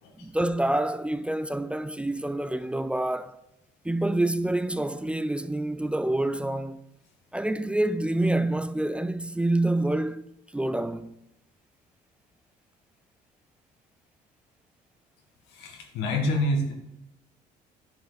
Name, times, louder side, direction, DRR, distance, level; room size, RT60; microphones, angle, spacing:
voice 1, 0.2-3.4 3.8-6.8 7.3-10.2 10.5-11.1, right 1 dB, 5° right, 0.3 m, -27 dB
voice 2, 15.5-16.7, left 1 dB, 90° left, 1.6 m, -27 dB
10.0 x 5.2 x 4.0 m
cardioid pair, 110°, 17 cm